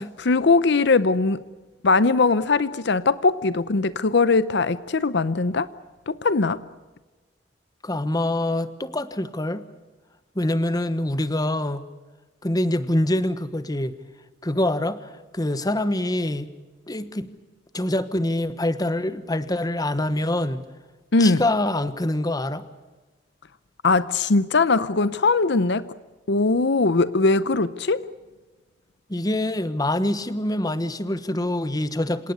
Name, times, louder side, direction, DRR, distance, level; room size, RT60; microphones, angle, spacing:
voice 1, 0.0-1.4 1.8-5.7 6.1-6.6 21.1-21.4 23.8-25.9 26.3-28.1, left 3 dB, 70° left, 15 dB, 0.7 m, -20 dB
voice 2, 7.8-9.6 10.3-11.8 12.4-13.9 14.4-15.0 15.3-16.5 16.9-17.3 17.7-20.6 21.2-22.6 29.1-32.3, left 1 dB, 20° left, 13 dB, 1.2 m, -25 dB
27.5 x 18.0 x 8.1 m, 1.3 s
head